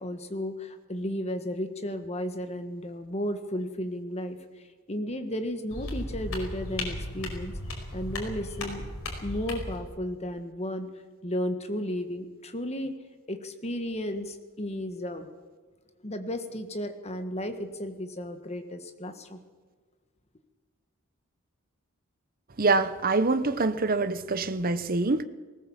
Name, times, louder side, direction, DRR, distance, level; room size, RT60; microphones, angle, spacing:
voice 1, 0.0-4.4 4.9-7.5 7.9-8.8 9.2-10.9 11.2-12.9 13.3-15.3 16.0-19.4, left 1 dB, 30° left, 1.7 m, -33 dB
sound 1, 5.7-9.8, left 1 dB, 65° left, 5.1 m, -36 dB
voice 2, 22.6-25.2, right 3 dB, 40° right, 0.9 m, -25 dB
19.5 x 18.0 x 7.4 m
head